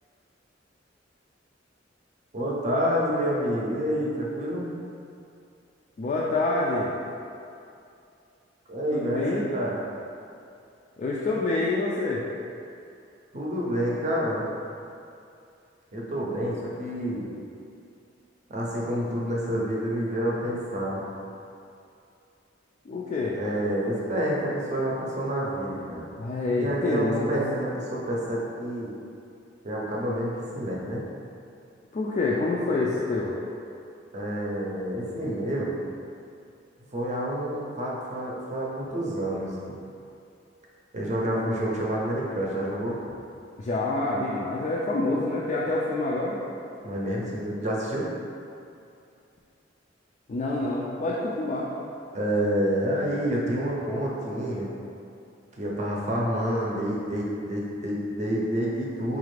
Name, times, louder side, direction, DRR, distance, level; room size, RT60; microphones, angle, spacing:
voice 1, 2.3-4.7 8.7-9.8 13.3-14.4 15.9-17.3 18.5-21.0 23.4-26.1 26.6-28.9 29.6-31.0 34.1-35.7 36.9-39.5 40.9-43.1 46.8-48.0 52.1-54.7 55.6-59.2, equal, 40° right, -4 dB, 0.6 m, -28 dB
voice 2, 6.0-6.9 8.9-9.4 11.0-12.2 22.9-23.4 26.2-27.3 31.9-33.3 43.6-46.4 50.3-51.7, left 2 dB, 40° left, -5 dB, 0.3 m, -27 dB
4.2 x 2.4 x 3.2 m, 2.6 s
head